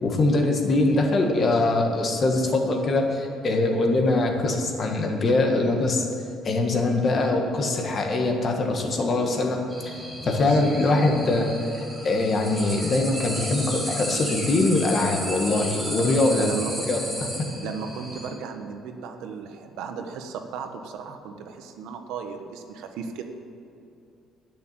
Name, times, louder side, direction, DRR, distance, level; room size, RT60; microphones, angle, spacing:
voice 1, 0.0-6.0 6.4-9.9 10.2-16.5 16.9-17.0, left 2 dB, 35° left, 2 dB, 1.5 m, -23 dB
sound 1, 9.7-18.3, equal, ahead, 2.7 m, -33 dB
voice 2, 10.5-10.9 16.3-16.9 17.6-23.2, right 6 dB, 80° right, 6 dB, 1.0 m, -35 dB
11.0 x 6.8 x 8.7 m, 2.7 s
cardioid pair, 150°, 0 cm